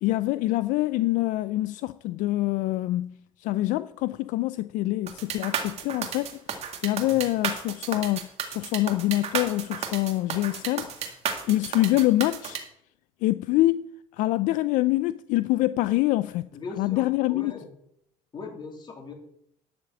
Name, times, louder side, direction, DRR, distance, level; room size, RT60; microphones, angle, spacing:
voice 1, 0.0-6.4 6.8-8.3 8.5-11.2 11.5-12.6 13.2-13.9 14.2-16.5 16.8-17.5, left 17 dB, 70° left, 0.4 m, -25 dB
sound 1, 5.1-12.6, right 7 dB, 50° right, 2.1 m, -32 dB
voice 2, 16.5-17.8 18.3-19.1, left 4 dB, 35° left, 3.0 m, -40 dB
12.0 x 5.0 x 7.9 m
cardioid pair, 105°, 14 cm